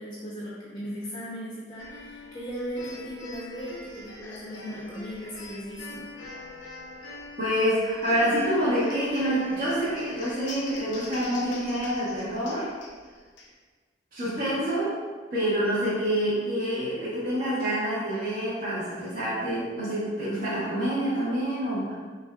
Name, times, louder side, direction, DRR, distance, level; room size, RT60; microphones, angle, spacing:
voice 1, 0.0-6.0, equal, 25° left, -8 dB, 0.6 m, -37 dB
sound 1, 1.8-13.5, left 3 dB, 85° left, 0.7 m, -43 dB
voice 2, 7.4-12.7 14.1-15.0 15.3-21.9, equal, 50° right, -11 dB, 1.1 m, -27 dB
6.0 x 2.4 x 2.3 m, 1.5 s
head